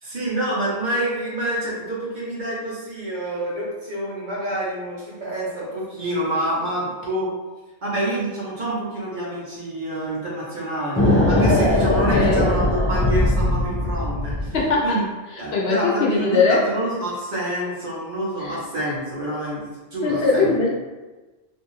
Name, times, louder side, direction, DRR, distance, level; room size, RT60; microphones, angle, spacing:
voice 1, 0.0-7.3 7.8-14.6 14.8-15.0 15.4-19.6 19.9-20.5, right 1 dB, 50° right, -6 dB, 0.8 m, -27 dB
sound 1, 11.0-14.7, left 1 dB, 20° left, 0.3 m, -20 dB
voice 2, 12.1-12.5 14.5-15.0 15.5-16.6 18.4-18.6 20.0-20.8, left 4 dB, 65° left, -2 dB, 0.7 m, -20 dB
2.6 x 2.2 x 3.0 m, 1.2 s
omnidirectional pair, 1.2 m